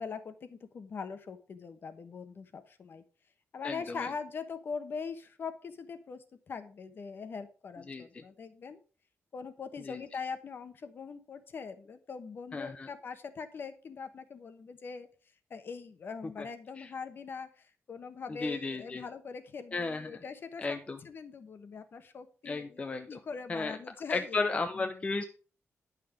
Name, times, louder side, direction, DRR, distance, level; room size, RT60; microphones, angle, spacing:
voice 1, 0.0-3.0 3.5-8.8 9.3-15.1 15.5-24.4 24.8-24.9, left 5 dB, 45° left, 10 dB, 1.1 m, -42 dB
voice 2, 3.6-4.1 7.9-8.2 9.8-10.0 12.5-12.9 16.4-16.5 16.8-16.9 18.3-19.0 19.7-20.1 20.6-21.0 22.5-23.2 23.5-23.8 24.1-25.3, left 3 dB, 25° left, 7 dB, 0.6 m, -34 dB
10.5 x 6.0 x 5.0 m, 0.37 s
wide cardioid pair, 170°, 5 cm